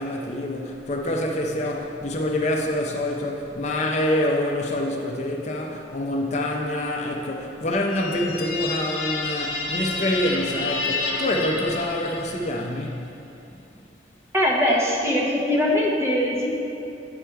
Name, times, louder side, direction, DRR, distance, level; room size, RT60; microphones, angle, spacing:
voice 1, 0.0-13.0, left 1 dB, 40° left, 0 dB, 0.5 m, -26 dB
sound 1, 7.9-12.6, left 3 dB, 70° left, 1.0 m, -29 dB
voice 2, 14.3-16.5, left 1 dB, 15° right, -3 dB, 0.9 m, -21 dB
9.0 x 5.0 x 4.5 m, 2.8 s
head